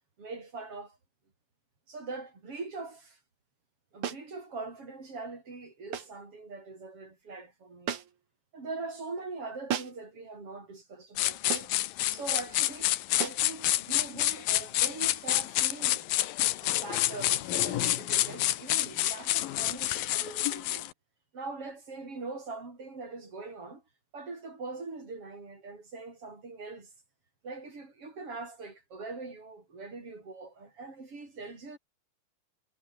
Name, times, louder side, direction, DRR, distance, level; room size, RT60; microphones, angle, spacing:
voice 1, 0.2-1.0 1.9-3.2 3.9-8.0 8.5-11.7 12.1-16.1 16.6-20.9 21.3-23.8 24.1-26.9 27.4-31.8, right 3 dB, 40° right, 7.1 m, -42 dB
sound 1, 4.0-4.3 5.9-6.2 7.9-8.3 9.7-10.1 11.5-11.9 13.2-13.5, right 9 dB, 60° right, 3.3 m, -35 dB
sound 2, 11.2-20.9, left 15 dB, 80° left, 2.8 m, -28 dB
omnidirectional pair, 4.1 m